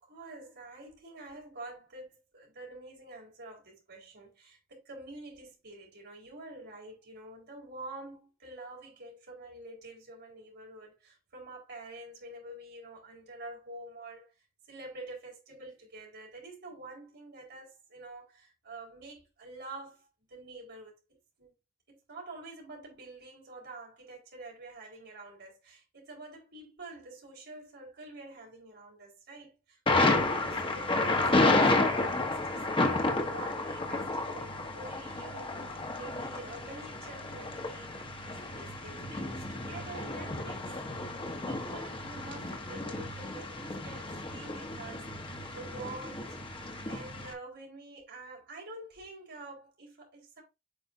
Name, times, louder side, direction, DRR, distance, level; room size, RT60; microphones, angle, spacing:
voice 1, 0.0-14.3 14.7-21.5 21.9-40.7 41.0-46.4 46.8-50.4, right 2 dB, 50° right, 4.6 m, -47 dB
Thunder, 29.9-47.3, left 2 dB, 25° left, 1.2 m, -31 dB
8.6 x 5.4 x 2.7 m
head